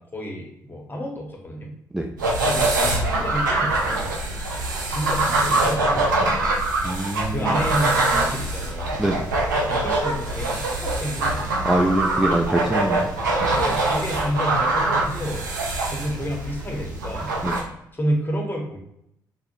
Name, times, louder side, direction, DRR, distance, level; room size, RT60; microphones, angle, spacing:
voice 1, 0.0-1.7 2.5-4.1 4.9-6.4 7.3-9.0 9.7-11.5 13.5-15.5 15.9-17.3 17.9-18.8, equal, 20° left, 0 dB, 1.0 m, -30 dB
sound 1, 2.2-17.6, right 2 dB, 85° right, 0.4 m, -23 dB
voice 2, 6.8-7.6 9.0-9.3 11.6-13.0 13.4-13.5 17.4-17.5, right 1 dB, 5° right, 0 dB, 0.4 m, -23 dB
3.6 x 2.1 x 2.6 m, 0.76 s
figure-of-eight pair, 40°, 10 cm